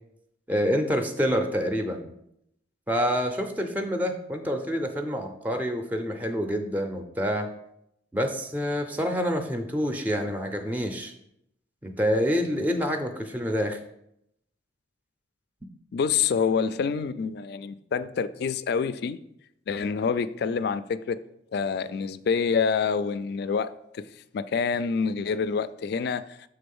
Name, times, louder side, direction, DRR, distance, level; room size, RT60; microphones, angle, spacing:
voice 1, 0.5-2.1 2.9-7.5 8.1-11.1 11.8-13.8, equal, 10° right, 0.5 m, -27 dB
voice 2, 15.9-19.2 19.7-21.2 21.5-24.0 24.3-26.2, left 6 dB, 60° left, 0.3 m, -27 dB
6.8 x 3.7 x 5.4 m
head